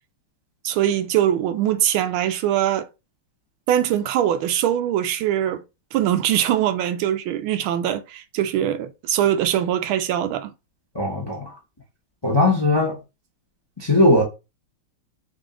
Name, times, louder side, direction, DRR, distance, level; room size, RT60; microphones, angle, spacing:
voice 1, 0.6-2.9 3.7-5.6 5.9-10.5, right 11 dB, 80° right, 1.4 m, -22 dB
voice 2, 10.9-11.5 12.2-13.0 13.8-14.2, left 2 dB, 25° left, 0.5 m, -19 dB
5.0 x 2.7 x 3.7 m
omnidirectional pair, 2.3 m